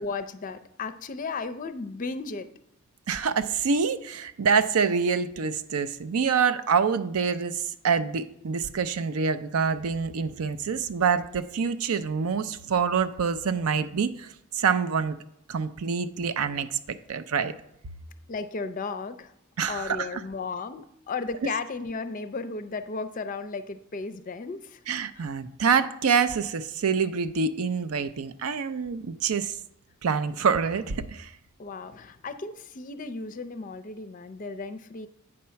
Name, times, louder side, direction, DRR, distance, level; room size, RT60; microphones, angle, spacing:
voice 1, 0.0-2.5 18.3-19.3 19.7-24.8 31.6-35.1, left 4 dB, 35° left, 10 dB, 0.4 m, -34 dB
voice 2, 3.1-15.2 15.5-17.5 19.6-20.2 21.4-21.5 24.9-29.5 30.0-31.3, right 6 dB, 80° right, 11 dB, 0.5 m, -26 dB
8.7 x 4.2 x 5.7 m, 0.76 s
head